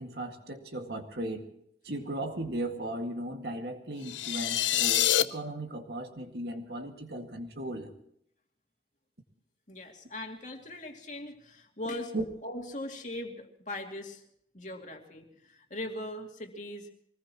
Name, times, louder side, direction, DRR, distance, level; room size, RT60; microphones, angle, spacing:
voice 1, 0.0-1.4 1.8-7.9 12.1-12.2, right 1 dB, 60° right, 4 dB, 2.1 m, -36 dB
sound 1, 4.0-5.2, left 12 dB, 85° left, 0.7 m, -26 dB
voice 2, 9.7-12.1 12.4-14.2 14.5-16.9, left 1 dB, 40° left, 2 dB, 2.5 m, -40 dB
24.0 x 19.5 x 3.0 m, 0.73 s
head